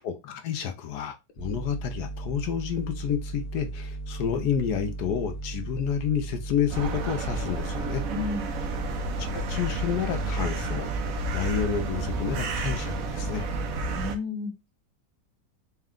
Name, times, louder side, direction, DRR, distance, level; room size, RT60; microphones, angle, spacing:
voice 1, 0.0-8.0 9.2-10.9 11.3-13.5, left 8 dB, 75° left, 1.2 m, -30 dB
sound 1, 1.4-14.1, right 2 dB, 25° right, 1.3 m, -36 dB
sound 2, 6.7-14.2, right 2 dB, 65° right, 1.0 m, -31 dB
voice 2, 8.1-8.6 13.9-14.7, left 3 dB, 45° right, 1.7 m, -33 dB
4.3 x 2.3 x 3.6 m
omnidirectional pair, 1.8 m